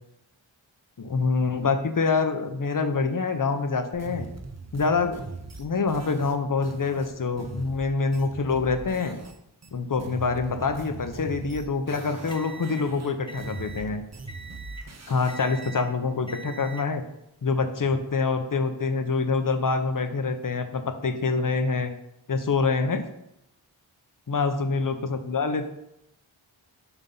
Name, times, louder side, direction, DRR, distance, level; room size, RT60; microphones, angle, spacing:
voice 1, 1.0-4.3 4.7-5.2 5.6-9.2 9.7-14.0 15.1-17.0 17.4-21.9 22.3-23.0 24.3-25.7, left 4 dB, 40° left, 8 dB, 0.7 m, -26 dB
sound 1, 3.9-9.4 9.6-12.4 12.6-15.7, right 3 dB, 35° right, 0.7 m, -41 dB
sound 2, 11.9-13.9 14.3-14.9 15.3-15.9 16.3-16.9 17.7-18.0, right 3 dB, 10° left, 0.9 m, -43 dB
5.6 x 3.6 x 5.3 m, 0.83 s
wide cardioid pair, 40°, 48 cm